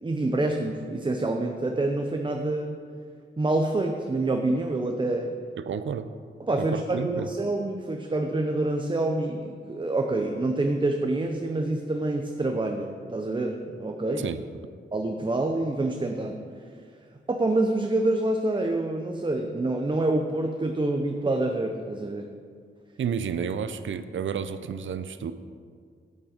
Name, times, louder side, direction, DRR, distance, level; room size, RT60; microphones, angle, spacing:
voice 1, 0.0-2.8 3.4-5.3 6.4-14.3 14.9-16.4 17.3-22.3, right 2 dB, 25° right, 3 dB, 0.7 m, -27 dB
voice 2, 5.6-6.1 6.6-7.3 14.2-14.4 23.0-25.3, right 7 dB, 75° right, 12 dB, 0.5 m, -31 dB
8.7 x 8.6 x 5.1 m, 2.1 s
wide cardioid pair, 90°, 20 cm